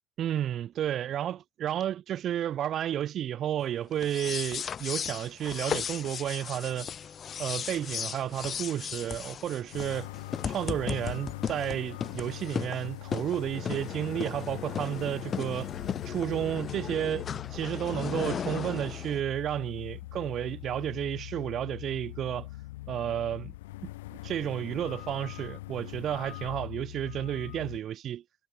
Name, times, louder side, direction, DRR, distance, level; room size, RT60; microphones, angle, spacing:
voice 1, 0.2-6.9 7.4-10.1 10.4-15.7 16.0-17.2 17.5-22.5 22.9-23.5 24.2-28.2, right 11 dB, 55° right, 0.7 m, -32 dB
sound 1, 4.0-19.2, left 7 dB, 45° left, 2.1 m, -36 dB
sound 2, 9.7-27.8, left 19 dB, 80° left, 3.6 m, -42 dB
hypercardioid pair, 60°, 0 cm